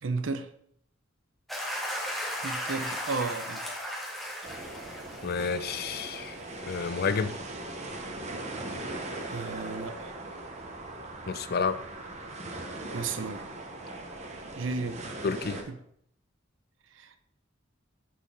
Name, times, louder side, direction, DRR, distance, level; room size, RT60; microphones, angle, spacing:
voice 1, 0.0-0.5 2.4-3.6 9.3-10.1 12.9-13.5 14.6-15.0 15.7-15.8 16.9-17.2, right 4 dB, 70° right, 10 dB, 0.7 m, -33 dB
sound 1, 1.5-6.2, equal, ahead, 1.9 m, -36 dB
sound 2, 4.4-15.6, right 2 dB, 35° right, 1.0 m, -40 dB
voice 2, 5.2-7.4 11.3-11.8 15.2-15.7, left 5 dB, 50° left, 13 dB, 0.5 m, -30 dB
10.5 x 4.8 x 3.4 m, 0.68 s
head